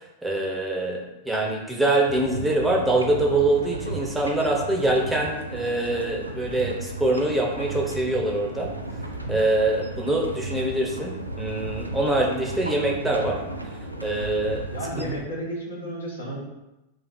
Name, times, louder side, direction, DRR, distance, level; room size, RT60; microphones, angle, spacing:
voice 1, 0.0-8.7 9.3-13.4 14.0-14.6 15.0-15.1, right 2 dB, 5° right, -1 dB, 0.6 m, -24 dB
sound 1, 2.0-15.2, right 2 dB, 85° right, 0.3 m, -34 dB
voice 2, 14.7-16.4, right 1 dB, 70° left, -3 dB, 1.1 m, -32 dB
3.2 x 2.4 x 4.1 m, 0.97 s
figure-of-eight pair, 90°, 0 cm